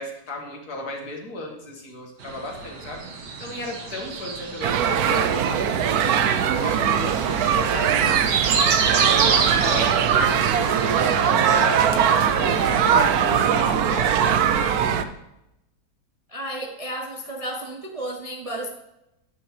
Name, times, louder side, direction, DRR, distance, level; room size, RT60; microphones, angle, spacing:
voice 1, 0.0-3.0 3.4-6.1 6.6-9.3 9.6-13.0 13.3-14.9, left 2 dB, 70° left, 1 dB, 2.2 m, -36 dB
sound 1, 2.2-11.8, right 5 dB, 90° right, 1.8 m, -30 dB
sound 2, 4.6-15.0, right 8 dB, 70° right, 1.1 m, -21 dB
sound 3, 5.8-13.7, right 1 dB, 50° right, 3.0 m, -34 dB
voice 2, 16.3-18.7, right 1 dB, 35° right, 1 dB, 0.6 m, -32 dB
9.7 x 9.1 x 3.2 m, 0.88 s
omnidirectional pair, 1.7 m